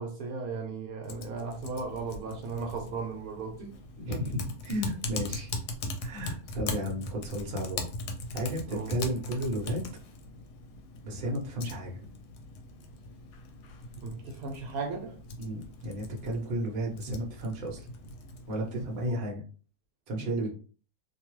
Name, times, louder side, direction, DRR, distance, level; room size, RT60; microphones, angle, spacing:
voice 1, 0.0-3.7 6.2-6.3 8.7-9.0 14.0-15.2 19.1-19.2 20.2-20.5, right 4 dB, 70° right, 1.0 m, -36 dB
Typing, 1.0-19.1, left 2 dB, 85° left, 1.1 m, -40 dB
voice 2, 4.0-5.5 6.0-7.8 8.3-9.9 11.0-12.1 15.4-17.9 18.5-19.4 20.1-20.5, equal, 45° right, 0.8 m, -33 dB
2.7 x 2.3 x 3.0 m
omnidirectional pair, 1.7 m